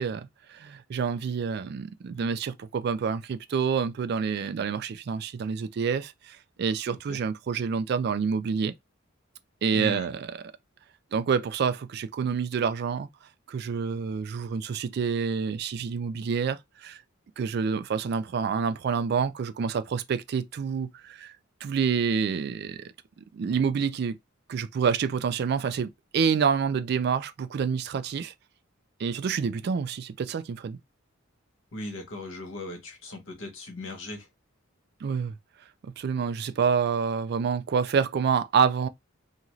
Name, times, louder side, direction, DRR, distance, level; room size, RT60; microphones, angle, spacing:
voice 1, 0.0-8.7 9.6-10.2 11.1-13.1 13.5-17.0 17.4-21.3 21.6-22.9 23.3-24.2 24.5-28.3 29.0-30.8 35.0-35.3 35.8-38.9, right 6 dB, 50° right, 0.3 m, -28 dB
voice 2, 6.9-7.2 9.7-10.1 31.7-34.3, left 1 dB, 70° left, 1.0 m, -38 dB
2.5 x 2.4 x 3.0 m
head